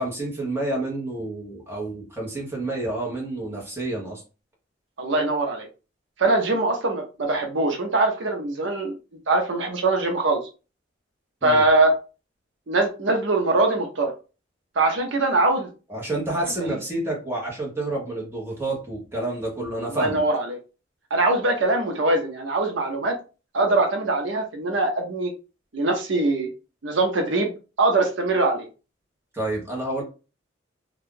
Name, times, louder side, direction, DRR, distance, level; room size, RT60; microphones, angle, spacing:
voice 1, 0.0-4.2 11.4-11.6 15.9-20.2 29.3-30.0, right 2 dB, 10° right, -3 dB, 1.0 m, -29 dB
voice 2, 5.0-5.7 6.2-8.9 9.3-10.4 11.4-12.0 12.7-14.1 14.8-15.7 19.8-20.6 21.1-23.1 23.5-25.3 25.7-26.5 26.8-27.5 27.8-28.7, right 2 dB, 70° right, 3 dB, 0.7 m, -22 dB
2.6 x 2.3 x 3.6 m, 0.32 s
head